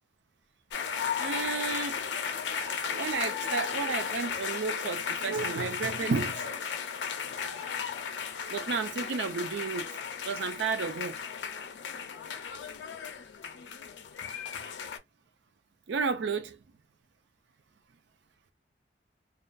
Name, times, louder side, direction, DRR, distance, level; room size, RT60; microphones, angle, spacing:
sound 1, 0.7-15.0, left 7 dB, 80° left, 0.4 m, -35 dB
voice 1, 1.2-6.4 8.5-9.9 10.3-11.2 15.9-16.6, right 5 dB, 75° right, 0.4 m, -32 dB
2.4 x 2.2 x 2.4 m
head